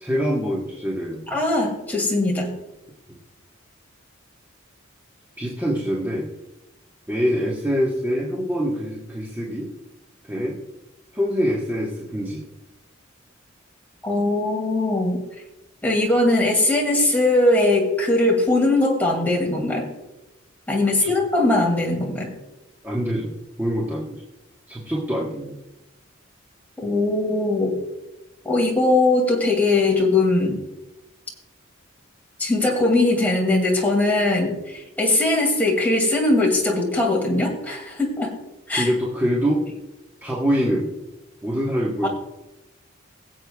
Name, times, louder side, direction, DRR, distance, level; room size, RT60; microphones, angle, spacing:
voice 1, 0.0-1.2 5.4-6.3 7.1-9.7 10.3-10.6 11.1-12.4 21.0-21.1 22.8-23.3 23.6-24.2 24.7-25.6 38.7-39.6 40.2-40.9 41.4-42.1, equal, 10° right, -2 dB, 1.3 m, -24 dB
voice 2, 1.3-2.5 14.0-15.2 15.8-19.9 20.7-22.3 26.8-27.7 28.4-30.6 32.4-38.3 38.7-38.9 42.0-42.1, left 2 dB, 10° left, -1 dB, 2.3 m, -20 dB
22.5 x 7.7 x 2.3 m, 0.99 s
head